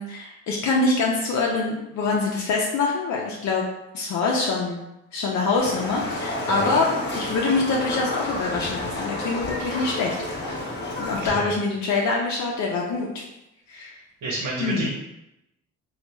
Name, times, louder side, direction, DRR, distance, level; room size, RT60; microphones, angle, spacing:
voice 1, 0.0-3.6 3.9-4.8 5.1-6.9 7.1-10.2 10.4-10.6 11.0-13.2 13.7-14.0 14.6-14.9, left 3 dB, 65° left, -2 dB, 0.6 m, -25 dB
Livestock farm animals working animals, 5.6-11.3, left 1 dB, 35° left, 0.9 m, -30 dB
voice 2, 6.5-6.8 11.2-11.6 14.2-14.9, right 2 dB, 90° right, -5 dB, 0.9 m, -29 dB
3.0 x 2.3 x 3.4 m, 0.89 s
cardioid pair, 90°, 30 cm